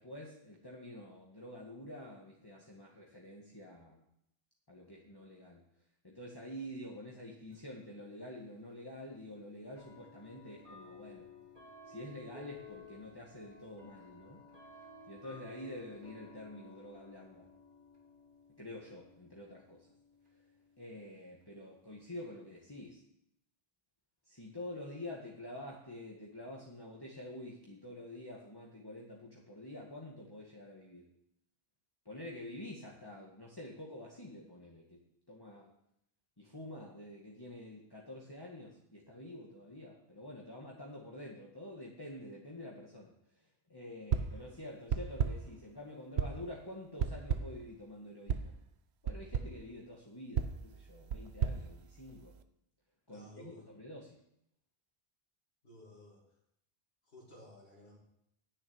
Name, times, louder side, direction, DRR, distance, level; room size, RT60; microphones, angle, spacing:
voice 1, 0.0-4.0 4.7-5.6 6.0-11.3 11.9-14.4 15.1-17.5 18.6-19.9 20.8-23.0 24.3-31.1 32.1-35.7 36.4-43.1 43.7-48.6 49.0-52.4 53.1-54.2, left 1 dB, 20° left, -4 dB, 1.7 m, -48 dB
sound 1, 7.5-7.6 8.7-8.8 9.8-23.0, left 3 dB, 55° right, 2.9 m, -56 dB
sound 2, 44.1-44.5 44.9-45.6 46.2-46.5 47.0-47.7 48.3-48.6 49.1-49.6 50.4-52.4, right 7 dB, 90° right, 1.0 m, -35 dB
voice 2, 53.1-53.6 55.6-56.2 57.1-58.0, left 1 dB, 75° left, -5 dB, 3.1 m, -55 dB
10.0 x 7.0 x 8.7 m, 0.76 s
omnidirectional pair, 1.0 m